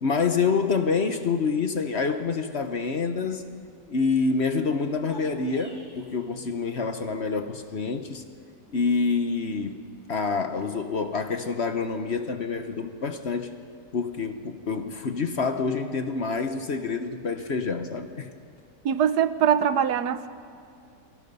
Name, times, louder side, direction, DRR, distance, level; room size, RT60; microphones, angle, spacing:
voice 1, 0.0-3.4 3.9-8.2 8.7-9.8 10.1-13.5 13.9-18.3, left 4 dB, 45° left, 8 dB, 1.1 m, -27 dB
sound 1, 4.9-6.1, left 2 dB, 15° right, 3.0 m, -48 dB
voice 2, 18.8-20.3, right 8 dB, 75° right, 13 dB, 1.3 m, -22 dB
28.0 x 23.5 x 5.4 m, 2.3 s
omnidirectional pair, 1.8 m